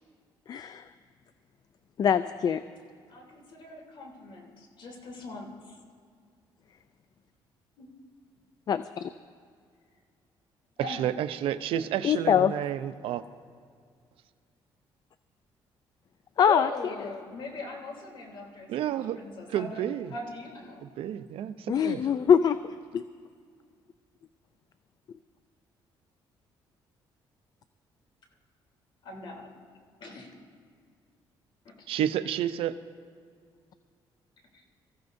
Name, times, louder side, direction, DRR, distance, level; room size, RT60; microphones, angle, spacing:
voice 1, 0.5-0.8 2.0-2.6 8.7-9.1 12.0-12.5 16.4-16.7 21.7-23.0, left 8 dB, 45° left, 12 dB, 0.4 m, -23 dB
voice 2, 3.1-5.8 7.8-7.9 10.8-11.0 16.4-19.8 20.1-20.9 29.0-29.5 30.0-30.4 31.6-31.7 34.5-34.6, left 2 dB, 60° left, 0 dB, 3.1 m, -40 dB
voice 3, 10.8-13.2 18.7-19.2 19.5-20.1 20.8-22.1 31.9-32.7, right 10 dB, 80° right, 12 dB, 0.6 m, -30 dB
25.5 x 15.0 x 2.7 m, 2.1 s
cardioid pair, 115°, 9 cm